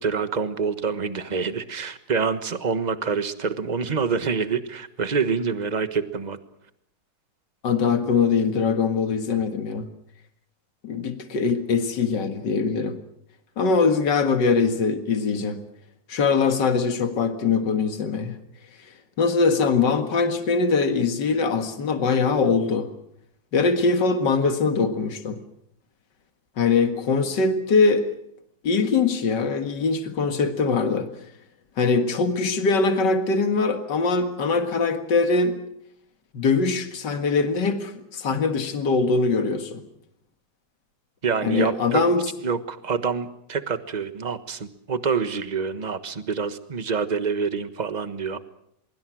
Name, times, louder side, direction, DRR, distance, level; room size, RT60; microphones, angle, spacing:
voice 1, 0.0-6.4 41.2-42.0 42.4-48.4, right 5 dB, 25° right, 10 dB, 1.3 m, -26 dB
voice 2, 7.6-9.8 10.8-13.0 13.6-15.6 16.1-18.3 19.2-22.9 23.5-25.4 26.6-28.1 28.6-31.1 31.8-35.6 36.3-39.8 41.4-42.3, left 4 dB, 70° left, 7 dB, 2.4 m, -22 dB
24.5 x 23.0 x 6.3 m, 0.74 s
omnidirectional pair, 2.0 m